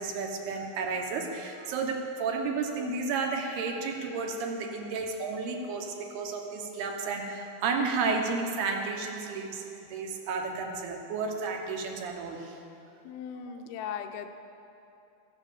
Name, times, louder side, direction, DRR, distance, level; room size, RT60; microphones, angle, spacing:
voice 1, 0.0-12.6 13.4-13.5, right 4 dB, 90° right, 2 dB, 3.2 m, -32 dB
voice 2, 13.0-14.3, left 8 dB, 90° left, 7 dB, 2.6 m, -38 dB
15.5 x 7.9 x 7.2 m, 2.7 s
omnidirectional pair, 4.4 m